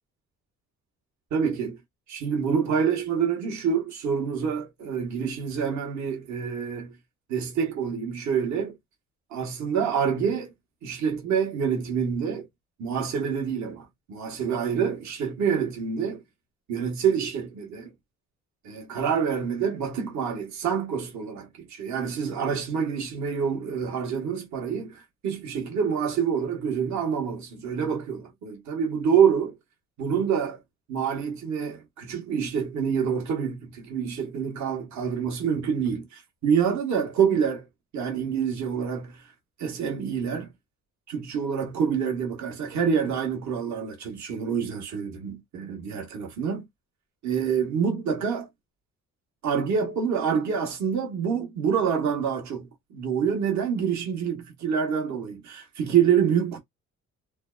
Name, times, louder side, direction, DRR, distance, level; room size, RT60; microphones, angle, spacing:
voice 1, 1.3-1.8 2.1-7.0 7.3-8.8 9.3-10.5 10.8-12.5 12.8-16.2 16.7-17.9 18.6-29.6 30.0-30.6 30.9-37.7 37.9-39.3 39.6-40.5 41.1-46.6 47.2-48.5 49.4-56.6, right 7 dB, 65° right, 1.1 m, -27 dB
2.7 x 2.2 x 2.2 m
cardioid pair, 90°, 30 cm